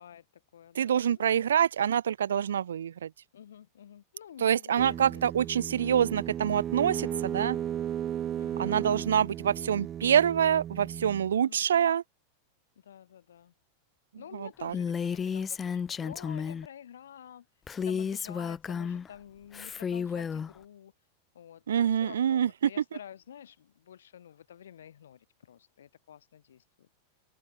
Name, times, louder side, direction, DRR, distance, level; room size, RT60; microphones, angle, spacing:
voice 1, 0.0-1.5 3.3-6.0 8.4-9.1 11.5-11.6 12.8-13.5 14.2-17.5 17.8-20.9 21.3-26.9, left 9 dB, 65° left, 5.7 m, -50 dB
voice 2, 0.8-3.1 4.4-7.6 8.6-12.0 14.3-14.7 21.7-22.5, right 9 dB, 65° right, 0.5 m, -26 dB
sound 1, 4.8-11.3, right 10 dB, 25° right, 1.7 m, -35 dB
Female speech woman speaking, 14.7-16.7 17.7-19.1 19.5-20.5, left 6 dB, 20° left, 1.4 m, -32 dB
open air
figure-of-eight pair, 90°, 0 cm